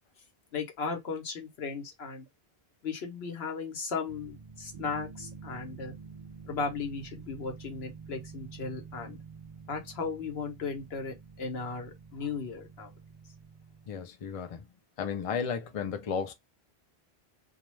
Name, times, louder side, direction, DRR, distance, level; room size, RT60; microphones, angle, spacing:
voice 1, 0.5-2.3 2.8-5.9 6.5-9.2 9.7-12.9, left 4 dB, 80° left, 1.1 m, -36 dB
sound 1, 4.1-14.0, right 5 dB, 50° right, 0.6 m, -48 dB
voice 2, 13.9-14.7 15.0-16.3, left 6 dB, 45° left, 0.5 m, -33 dB
2.3 x 2.2 x 3.0 m
omnidirectional pair, 1.0 m